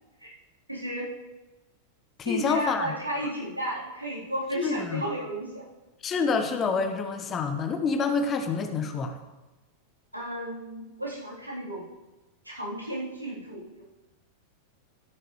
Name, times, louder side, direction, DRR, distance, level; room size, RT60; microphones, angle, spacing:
voice 1, 0.7-1.1 2.2-5.6 10.1-11.9 12.4-13.8, equal, 85° right, -7 dB, 3.7 m, -33 dB
voice 2, 2.2-2.9 3.2-3.3 4.6-5.0 6.0-9.2, left 4 dB, 25° left, 7 dB, 1.1 m, -27 dB
13.0 x 9.7 x 3.2 m, 1.1 s
figure-of-eight pair, 90°, 0 cm